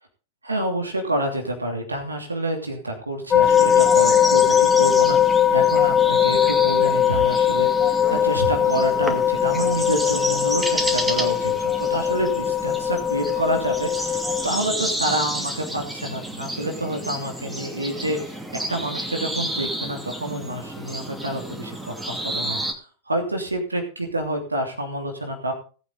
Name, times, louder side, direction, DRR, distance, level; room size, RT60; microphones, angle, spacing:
voice 1, 0.4-18.4 18.7-22.8 23.1-25.5, right 1 dB, 80° right, 3 dB, 2.9 m, -28 dB
sound 1, 3.3-14.5, left 10 dB, 20° left, 0.6 m, -20 dB
sound 2, 3.4-22.7, right 1 dB, 5° right, 2.6 m, -31 dB
19.0 x 8.7 x 3.9 m, 0.37 s
figure-of-eight pair, 90°, 0 cm